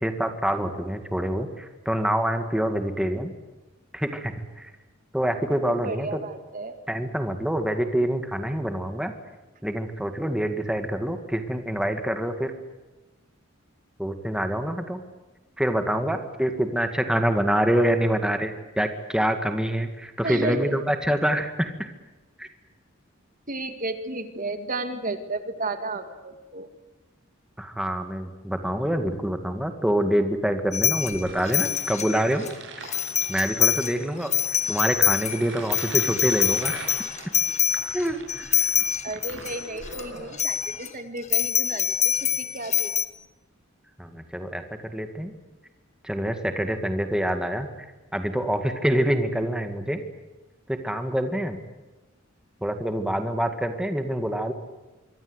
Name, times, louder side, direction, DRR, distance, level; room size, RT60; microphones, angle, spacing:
voice 1, 0.0-3.3 3.9-4.7 5.1-6.2 6.9-9.1 9.6-12.5 14.0-15.0 15.6-21.9 22.4-22.5 27.6-32.5 32.9-33.0 33.3-34.3 34.7-36.9 37.9-38.7 44.0-44.6 44.9-45.3 46.0-47.9 48.1-50.0 50.7-51.6 52.6-54.5, equal, 5° right, 6 dB, 2.0 m, -26 dB
voice 2, 5.7-6.8 20.2-20.8 23.5-26.7 39.0-42.9, right 2 dB, 45° right, 8 dB, 2.2 m, -33 dB
sound 1, 30.7-32.5 32.9-34.0 34.2-40.0 40.3-40.9 41.3-43.1, left 10 dB, 35° left, 1.4 m, -25 dB
sound 2, 31.2-40.8, right 3 dB, 65° right, 7.7 m, -42 dB
25.5 x 24.0 x 8.2 m, 1.1 s
head